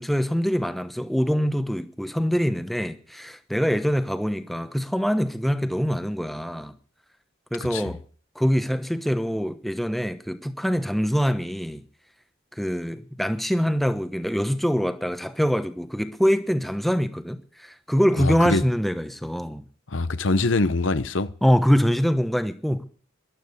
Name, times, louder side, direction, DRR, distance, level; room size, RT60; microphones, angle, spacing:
voice 1, 0.0-6.7 7.5-8.0 8.3-11.8 12.5-19.6 21.4-22.8, equal, ahead, 1.0 m, -24 dB
voice 2, 18.2-18.6 19.9-21.3, left 3 dB, 70° left, 0.9 m, -23 dB
12.5 x 11.5 x 8.2 m
head